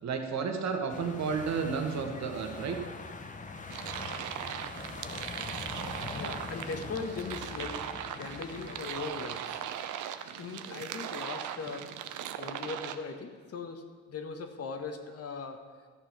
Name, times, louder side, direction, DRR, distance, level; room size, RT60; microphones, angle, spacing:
voice 1, 0.0-2.8, right 5 dB, 65° right, 4 dB, 1.6 m, -32 dB
sound 1, 0.9-9.7, left 3 dB, 25° left, 1.0 m, -43 dB
sound 2, 3.7-13.0, right 10 dB, 80° right, 0.7 m, -39 dB
voice 2, 6.1-9.8 10.3-11.9 12.4-13.8 14.1-15.6, left 4 dB, 50° left, 6 dB, 1.3 m, -39 dB
13.0 x 7.4 x 5.9 m, 1.5 s
cardioid pair, 90°, 30 cm